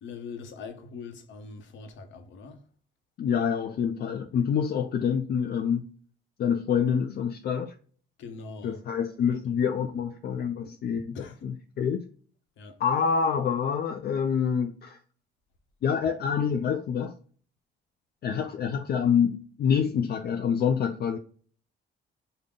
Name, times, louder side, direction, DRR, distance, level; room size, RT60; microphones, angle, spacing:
voice 1, 0.0-2.6 8.2-8.8 11.1-11.5 12.6-12.8, left 4 dB, 75° left, 0.8 m, -42 dB
voice 2, 3.2-5.9 6.4-7.7 8.6-11.2 11.4-12.1 12.8-15.0 15.8-17.1 18.2-21.2, left 7 dB, 55° left, 0.4 m, -26 dB
3.8 x 2.1 x 3.5 m
cardioid pair, 90°, 20 cm